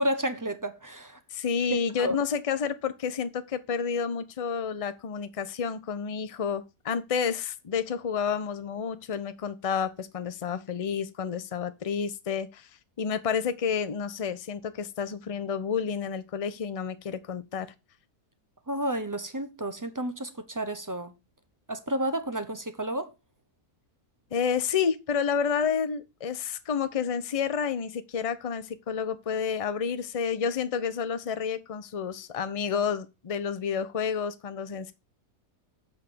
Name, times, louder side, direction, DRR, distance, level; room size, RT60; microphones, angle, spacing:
voice 1, 0.0-1.2 1.7-2.2 18.7-21.1 21.7-23.1, right 1 dB, 25° right, 0.4 m, -31 dB
voice 2, 1.3-12.7 13.0-17.7 24.3-34.9, left 6 dB, 35° left, 0.5 m, -30 dB
7.8 x 4.5 x 6.8 m
omnidirectional pair, 1.7 m